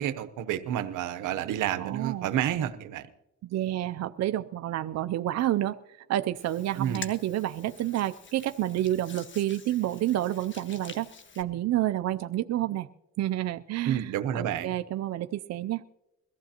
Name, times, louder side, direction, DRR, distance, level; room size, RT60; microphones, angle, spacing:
voice 1, 0.0-3.1 6.8-7.0 13.8-14.7, right 10 dB, 85° right, 13 dB, 0.9 m, -30 dB
voice 2, 1.8-2.3 3.4-5.8 6.1-11.1 11.4-12.9 13.2-15.8, right 13 dB, 60° right, 10 dB, 0.5 m, -29 dB
Hands, 6.3-11.4, left 5 dB, 40° left, 1.4 m, -47 dB
22.0 x 15.0 x 2.9 m, 0.92 s
cardioid pair, 90°, 30 cm